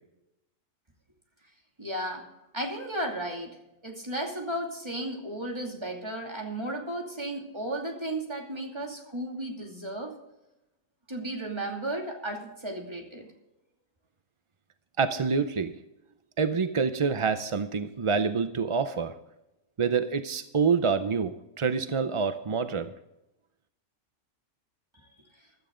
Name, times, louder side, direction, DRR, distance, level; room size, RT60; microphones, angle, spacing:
voice 1, 1.8-2.3 2.5-3.6 3.8-10.2 11.1-13.3, right 1 dB, 20° right, 0 dB, 2.6 m, -34 dB
voice 2, 15.0-15.7 16.4-19.2 19.8-22.9, right 5 dB, 45° right, 10 dB, 0.4 m, -27 dB
16.0 x 12.0 x 3.8 m, 0.91 s
omnidirectional pair, 1.4 m